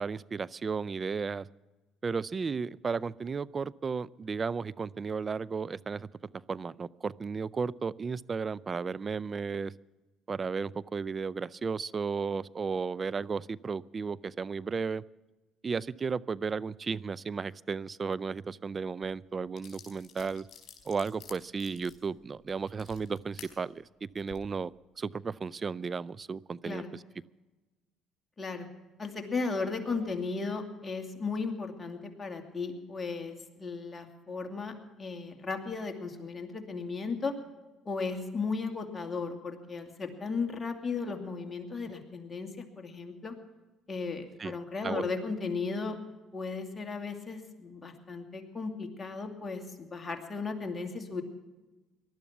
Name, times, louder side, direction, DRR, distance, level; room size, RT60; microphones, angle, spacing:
voice 1, 0.0-1.5 2.0-6.1 6.5-9.7 10.3-15.0 15.6-20.5 20.9-24.7 25.0-27.0 44.4-44.5 44.8-45.0, right 5 dB, 35° right, 20 dB, 0.4 m, -34 dB
sound 1, 19.0-19.1 19.6-23.5 24.1-24.4, left 8 dB, 50° left, 4.3 m, -51 dB
voice 2, 28.4-28.7 29.0-37.3 37.9-43.4 43.9-46.0 46.3-51.2, left 4 dB, 30° left, 4 dB, 2.5 m, -35 dB
19.5 x 12.0 x 5.9 m, 1.2 s
supercardioid pair, 65°, 0 cm